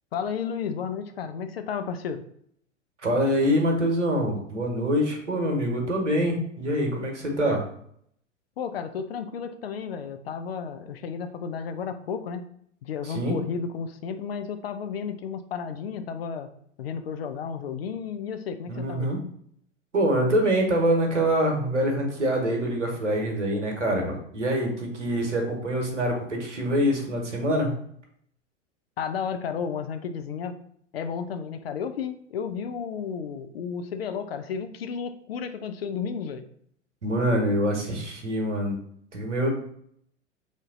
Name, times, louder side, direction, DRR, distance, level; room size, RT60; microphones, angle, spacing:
voice 1, 0.1-2.2 8.6-12.5 12.8-16.5 16.8-19.1 29.0-30.6 30.9-36.5, left 6 dB, 55° left, 8 dB, 0.4 m, -32 dB
voice 2, 3.0-7.6 13.0-13.4 18.7-19.2 19.9-27.7 37.0-38.8 39.1-39.5, equal, 80° right, 2 dB, 1.0 m, -25 dB
3.5 x 2.6 x 3.6 m, 0.67 s
figure-of-eight pair, 95°, 36 cm